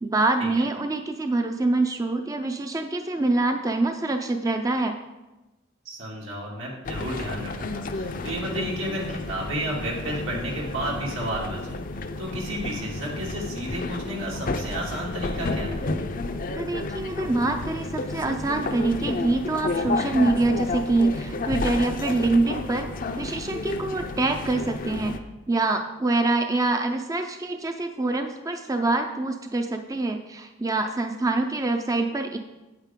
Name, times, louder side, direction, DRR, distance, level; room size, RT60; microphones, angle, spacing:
voice 1, 0.0-5.0 16.5-22.9 23.2-25.2 25.5-32.4, right 2 dB, 15° right, 6 dB, 0.4 m, -25 dB
voice 2, 5.8-11.8 12.2-15.9, right 1 dB, 85° right, -3 dB, 2.5 m, -32 dB
sound 1, 6.9-25.2, left 3 dB, 45° left, 0.5 m, -31 dB
8.9 x 8.3 x 3.7 m, 1.1 s
head